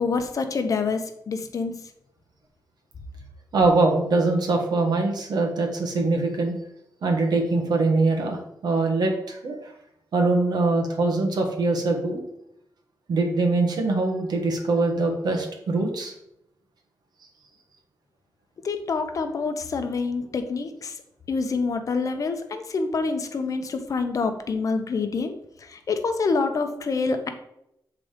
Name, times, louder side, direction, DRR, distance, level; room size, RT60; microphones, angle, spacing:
voice 1, 0.0-1.7 18.6-20.9 21.3-27.3, left 4 dB, 50° left, 7 dB, 0.7 m, -27 dB
voice 2, 3.5-6.5 7.0-9.6 10.1-12.2 13.1-16.1, right 3 dB, 70° right, 2 dB, 1.4 m, -23 dB
7.6 x 3.8 x 5.0 m, 0.80 s
wide cardioid pair, 175°, 7 cm